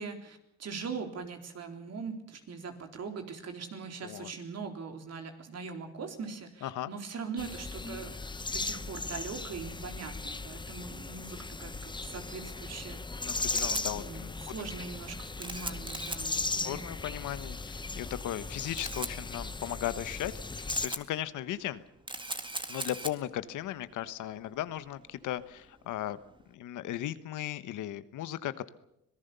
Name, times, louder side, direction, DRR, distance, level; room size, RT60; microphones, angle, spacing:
voice 1, 0.0-8.1 8.5-13.0 13.9-16.8, right 5 dB, 55° right, 5 dB, 3.9 m, -41 dB
voice 2, 6.6-6.9 13.3-14.5 16.6-21.8 22.7-26.2 26.5-28.7, left 12 dB, 80° left, 14 dB, 1.2 m, -37 dB
sound 1, 7.4-20.9, left 3 dB, 15° left, 0.9 m, -37 dB
Camera, 13.2-26.5, right 2 dB, 15° right, 2.0 m, -43 dB
25.5 x 18.5 x 6.9 m, 0.80 s
cardioid pair, 90°, 30 cm